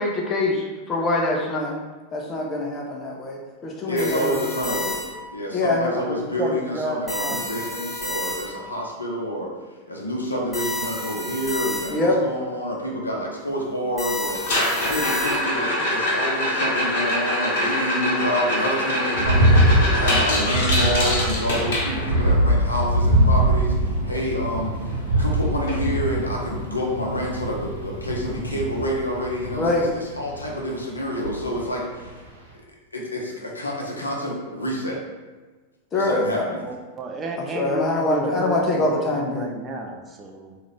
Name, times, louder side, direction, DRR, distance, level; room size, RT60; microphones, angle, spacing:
voice 1, 0.0-1.7 2.1-4.4 5.5-5.9 11.9-12.2 29.6-29.9 35.9-36.5 37.5-39.5, left 2 dB, 25° left, 0 dB, 0.7 m, -24 dB
voice 2, 3.8-5.0 5.3-9.5 9.9-14.4 14.8-32.2 32.9-35.0 35.9-36.6, equal, 80° left, -2 dB, 0.7 m, -28 dB
sound 1, 4.0-5.4 7.1-8.7 10.5-12.2 14.0-15.7, left 1 dB, 5° left, 1.3 m, -31 dB
voice 3, 5.9-7.5 36.4-40.6, right 2 dB, 20° right, 1 dB, 0.4 m, -32 dB
sound 2, 14.3-22.3 24.6-24.7 24.9-25.3 25.7-25.8 26.3-26.4 28.3-28.4, left 1 dB, 55° left, 1.1 m, -24 dB
sound 3, 19.1-30.5 31.2-31.6 32.0-32.1, right 1 dB, 75° right, 0.7 m, -22 dB
3.7 x 2.5 x 3.2 m, 1.3 s
figure-of-eight pair, 90°, 0 cm